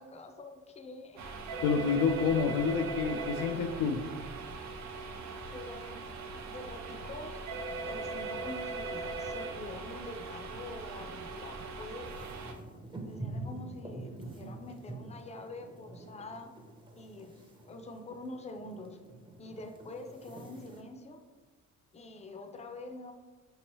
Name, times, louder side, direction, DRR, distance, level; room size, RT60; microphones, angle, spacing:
voice 1, 0.0-1.4 5.0-5.1 5.5-6.0 6.4-7.4 7.8-12.1 13.1-16.5 16.9-19.0 19.4-21.2 21.9-23.1, left 2 dB, 20° left, 5 dB, 0.5 m, -45 dB
sound 1, 1.2-12.5, right 3 dB, 65° right, 0.6 m, -39 dB
voice 2, 1.6-4.0, left 6 dB, 85° left, 6 dB, 0.5 m, -28 dB
sound 2, 12.0-20.8, right 2 dB, 15° right, 0.7 m, -46 dB
5.0 x 3.1 x 3.0 m, 1.3 s
cardioid pair, 90°, 30 cm